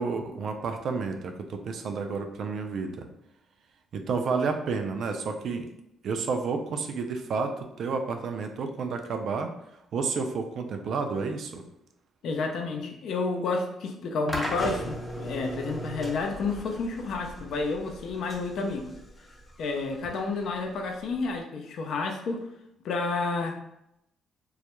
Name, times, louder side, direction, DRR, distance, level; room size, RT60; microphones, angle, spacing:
voice 1, 0.0-3.1 3.9-5.7 6.0-9.5 9.9-11.6, right 4 dB, 65° right, 5 dB, 0.3 m, -30 dB
voice 2, 12.2-18.9 19.6-22.5 22.8-23.6, left 3 dB, 70° left, 3 dB, 0.4 m, -30 dB
sound 1, 14.3-21.4, equal, 10° left, 0.6 m, -38 dB
2.3 x 2.1 x 2.9 m, 0.80 s
cardioid pair, 90°, 0 cm